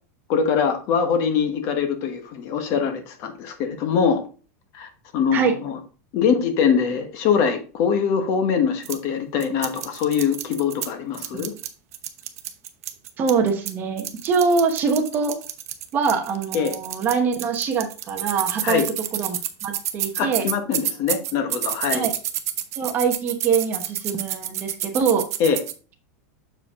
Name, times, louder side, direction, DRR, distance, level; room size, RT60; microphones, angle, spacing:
voice 1, 0.3-4.2 4.7-5.8 6.1-11.5 16.5-16.8 18.6-18.9 20.2-22.1 25.4-25.6, left 6 dB, 35° left, 7 dB, 1.1 m, -23 dB
sound 1, 8.8-9.0 9.4-10.9 11.1-13.7 14.0-25.7, right 12 dB, 70° right, 0.8 m, -29 dB
voice 2, 13.2-15.4 15.9-18.8 19.1-19.4 19.6-20.5 21.9-22.1 22.7-25.2, right 5 dB, 25° right, 5 dB, 1.0 m, -23 dB
6.9 x 4.8 x 3.6 m, 0.37 s
supercardioid pair, 170°, 8 cm